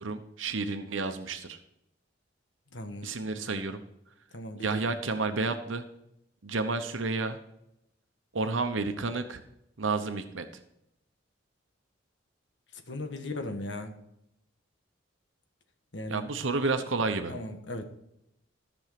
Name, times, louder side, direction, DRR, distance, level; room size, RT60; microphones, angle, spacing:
voice 1, 0.0-1.6 3.0-3.8 4.6-5.8 6.4-7.4 8.3-9.4 9.8-10.5 16.1-17.3, right 3 dB, 90° right, 8 dB, 0.9 m, -30 dB
voice 2, 2.7-3.1 4.3-4.8 12.9-13.9 15.9-16.3 17.3-17.8, left 1 dB, 65° left, 6 dB, 1.5 m, -37 dB
14.0 x 6.2 x 5.9 m, 0.80 s
head